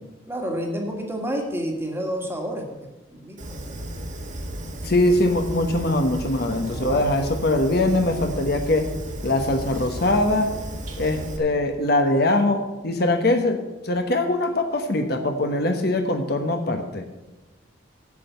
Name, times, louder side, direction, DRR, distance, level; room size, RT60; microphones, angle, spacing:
voice 1, 0.3-2.6 3.1-3.8 6.7-7.1, equal, 10° right, 1 dB, 1.7 m, -29 dB
Fire, 3.4-11.4, right 1 dB, 40° right, 1.5 m, -34 dB
voice 2, 4.6-8.9 9.2-10.5 11.0-17.0, left 2 dB, 50° left, 5 dB, 1.1 m, -22 dB
8.3 x 7.6 x 8.1 m, 1.1 s
head